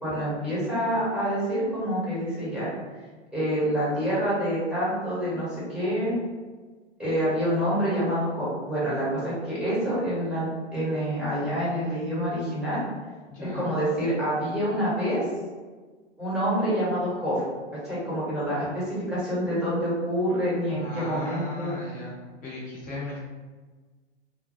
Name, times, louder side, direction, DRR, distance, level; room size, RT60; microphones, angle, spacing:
voice 1, 0.0-2.7 3.3-6.1 7.0-12.8 13.4-15.2 16.2-17.4 17.8-21.7, equal, ahead, -10 dB, 1.1 m, -27 dB
voice 2, 13.3-13.7 20.7-22.2 22.4-23.2, left 2 dB, 25° left, -6 dB, 0.9 m, -36 dB
2.1 x 2.0 x 3.0 m, 1.4 s
hypercardioid pair, 115°, 35 cm